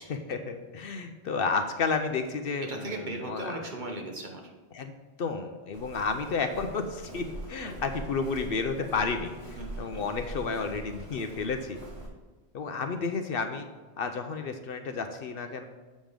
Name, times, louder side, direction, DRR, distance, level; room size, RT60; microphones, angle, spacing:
voice 1, 0.1-3.5 4.7-11.8 12.5-13.7 14.0-15.6, left 4 dB, 65° left, 7 dB, 0.8 m, -31 dB
voice 2, 2.7-4.5 9.6-10.0, right 1 dB, 45° right, 1 dB, 1.2 m, -37 dB
Walk footsteps, 5.7-12.1, right 1 dB, 70° right, 2.2 m, -42 dB
7.5 x 5.3 x 5.0 m, 1.2 s
omnidirectional pair, 1.1 m